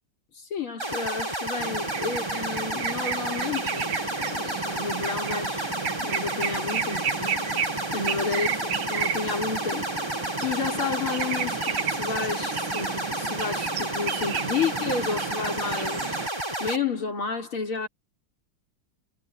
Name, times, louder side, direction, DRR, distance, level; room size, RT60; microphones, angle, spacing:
voice 1, 0.4-7.7 7.9-10.2 10.4-16.3 16.6-17.9, left 5 dB, 80° left, 5.5 m, -31 dB
sound 1, 0.8-16.8, right 1 dB, 10° right, 3.3 m, -31 dB
sound 2, 1.6-16.3, right 8 dB, 80° right, 2.2 m, -33 dB
omnidirectional pair, 2.3 m